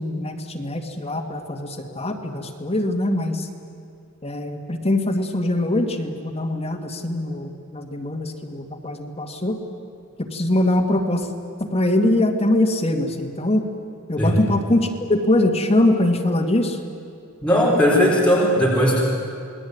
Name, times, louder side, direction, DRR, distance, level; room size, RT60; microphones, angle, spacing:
voice 1, 0.0-3.5 4.2-9.6 10.2-11.3 11.6-13.6 14.1-16.8, left 1 dB, 30° left, 2 dB, 2.2 m, -22 dB
voice 2, 17.4-19.0, equal, 5° left, -5 dB, 4.5 m, -17 dB
28.5 x 20.0 x 9.5 m, 2.5 s
head